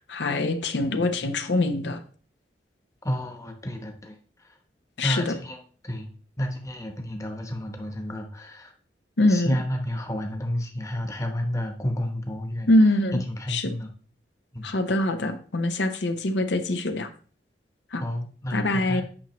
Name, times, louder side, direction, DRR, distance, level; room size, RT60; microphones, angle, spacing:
voice 1, 0.1-2.0 5.0-5.3 9.2-9.6 12.7-13.2 13.5-13.7 14.6-17.1 17.9-18.0 18.5-19.0, left 1 dB, 85° left, 7 dB, 0.7 m, -23 dB
voice 2, 3.0-4.2 5.0-5.6 5.8-6.1 6.4-8.7 9.3-12.7 13.3-13.9 14.5-14.6 18.0-19.0, equal, 20° left, 4 dB, 1.0 m, -30 dB
8.7 x 6.1 x 3.0 m, 0.42 s
head